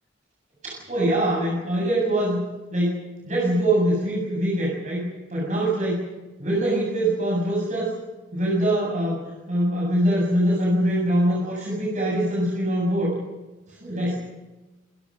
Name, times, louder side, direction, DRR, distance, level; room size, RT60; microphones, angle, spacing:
voice 1, 0.6-2.4 2.7-5.0 5.3-6.1 6.4-7.9 8.3-9.2 9.5-13.1 13.7-14.1, right 1 dB, 40° right, -3 dB, 7.5 m, -23 dB
27.0 x 22.0 x 6.4 m, 1.1 s
head